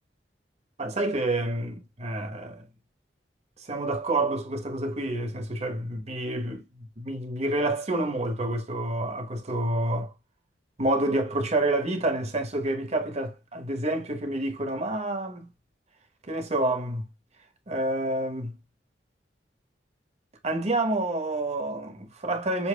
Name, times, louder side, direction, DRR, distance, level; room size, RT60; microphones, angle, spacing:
voice 1, 0.8-2.7 3.6-10.1 10.8-15.5 16.3-17.1 17.7-18.6 20.4-22.7, right 1 dB, 40° right, 1.2 m, -28 dB
7.1 x 2.8 x 2.3 m
head